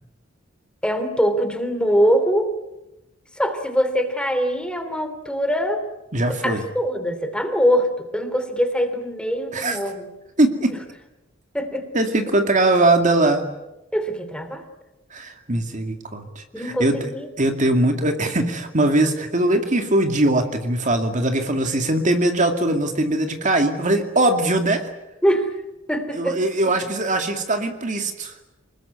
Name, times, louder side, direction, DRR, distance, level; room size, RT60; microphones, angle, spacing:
voice 1, 0.8-2.5 3.4-5.8 6.2-10.1 11.5-11.9 13.9-14.6 16.5-17.3 25.2-25.5 25.9-26.4, equal, 5° left, 8 dB, 2.9 m, -23 dB
voice 2, 6.1-6.6 9.5-9.8 10.4-10.7 11.9-13.5 15.1-17.0 17.4-24.9 26.1-28.3, right 2 dB, 40° right, 6 dB, 2.3 m, -21 dB
26.5 x 21.0 x 9.6 m, 0.96 s
head